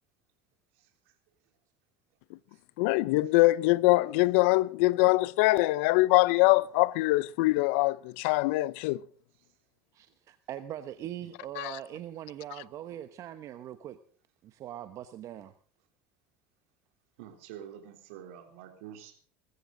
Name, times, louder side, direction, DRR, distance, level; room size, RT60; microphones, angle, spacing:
voice 1, 0.7-1.1 2.5-2.6 9.4-9.5 11.2-11.3 17.2-19.2, right 9 dB, 85° right, 3.4 m, -48 dB
voice 2, 2.8-9.0 11.6-11.8, left 21 dB, 80° left, 0.6 m, -23 dB
voice 3, 9.9-14.0 14.4-15.5, right 11 dB, 50° right, 1.0 m, -41 dB
20.5 x 14.0 x 3.9 m
supercardioid pair, 110°, 7 cm